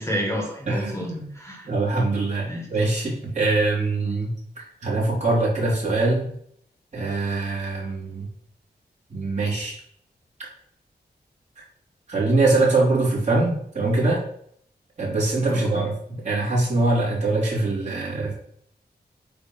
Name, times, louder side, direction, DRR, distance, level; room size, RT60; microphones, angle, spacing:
voice 1, 0.0-1.7 2.5-2.7 15.4-15.9, equal, 15° left, 0 dB, 1.5 m, -30 dB
voice 2, 0.7-1.3 1.7-4.3 4.8-6.3 6.9-8.3 9.1-9.8 12.1-14.2 15.0-18.3, right 2 dB, 45° right, -6 dB, 3.1 m, -23 dB
8.5 x 3.2 x 5.7 m, 0.66 s
wide cardioid pair, 145°, 17 cm